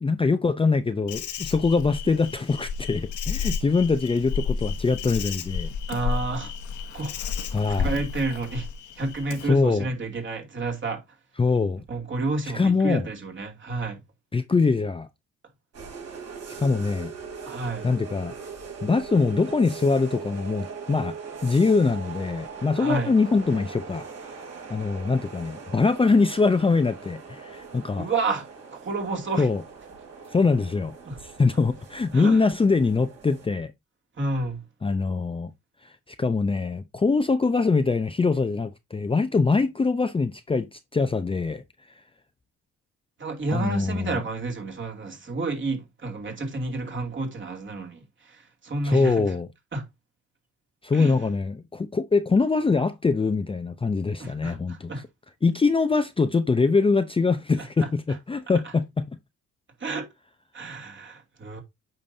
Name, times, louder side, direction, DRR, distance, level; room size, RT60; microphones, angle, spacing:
voice 1, 0.0-5.7 7.5-7.9 9.5-9.9 11.4-11.8 12.5-13.0 14.3-15.1 16.6-17.1 17.8-18.4 18.8-21.2 21.4-24.0 24.7-28.1 29.4-29.6 30.3-30.9 31.2-33.7 34.8-35.5 35.8-41.6 43.5-44.2 48.8-49.5 50.8-54.9 55.4-59.0, left 4 dB, 20° left, 0.6 m, -23 dB
Insect, 1.1-9.5, left 6 dB, 80° left, 1.3 m, -32 dB
voice 2, 5.9-6.5 6.9-7.2 7.7-8.7 8.9-11.0 11.9-14.0 17.4-17.9 22.7-23.1 28.0-29.5 31.0-31.2 32.1-32.4 34.2-34.6 43.2-49.4 49.7-49.9 50.9-51.2 54.2-55.0 57.6-57.9 58.6-58.7 59.8-60.1 60.5-61.6, right 3 dB, 40° right, 2.6 m, -30 dB
sound 1, 15.7-33.5, right 5 dB, 55° right, 3.5 m, -41 dB
8.8 x 5.2 x 2.7 m
cardioid pair, 90°, 30 cm